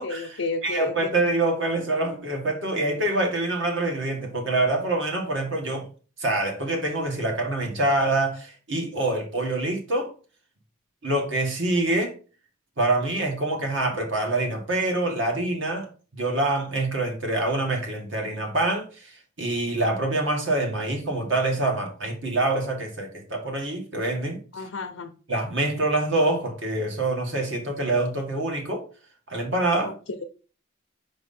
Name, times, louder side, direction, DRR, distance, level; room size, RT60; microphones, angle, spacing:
voice 1, 0.0-1.1 24.5-25.1 29.8-30.2, left 3 dB, 80° left, 0.6 m, -32 dB
voice 2, 0.6-5.8 6.2-10.1 11.0-12.1 12.8-15.9 16.1-24.4 25.3-28.8 29.3-29.9, right 2 dB, 65° right, 1.8 m, -25 dB
5.3 x 4.8 x 4.2 m
head